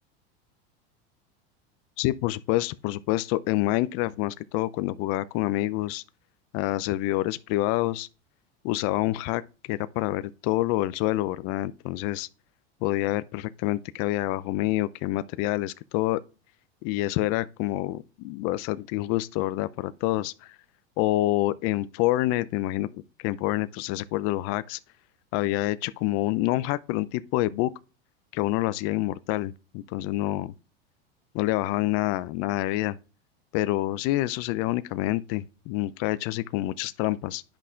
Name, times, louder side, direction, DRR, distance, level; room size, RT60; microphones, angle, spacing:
voice 1, 2.0-6.0 6.5-8.1 8.6-9.4 9.7-12.3 12.8-16.2 16.8-20.6 21.0-22.9 23.2-24.8 25.3-27.7 28.3-30.5 31.3-33.0 33.5-37.4, left 17 dB, 50° left, 0.4 m, -27 dB
10.5 x 5.6 x 2.5 m
hypercardioid pair, 105°, 31 cm